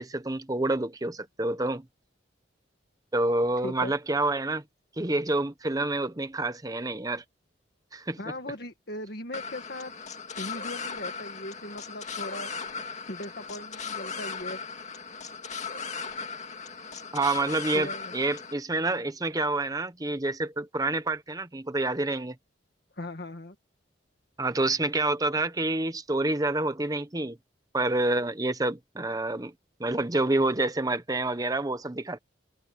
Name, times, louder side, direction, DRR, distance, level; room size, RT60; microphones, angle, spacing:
voice 1, 0.0-1.8 3.1-4.6 5.0-7.2 7.9-8.2 17.1-22.3 24.4-27.4 27.7-29.5 29.8-32.2, right 2 dB, 20° right, 0.9 m, -28 dB
voice 2, 3.6-3.9 8.2-9.9 10.4-12.5 12.8-14.6 17.7-18.1 22.9-23.6, left 1 dB, 55° left, 1.8 m, -39 dB
sound 1, 9.3-18.5, left 5 dB, 40° left, 2.1 m, -37 dB
head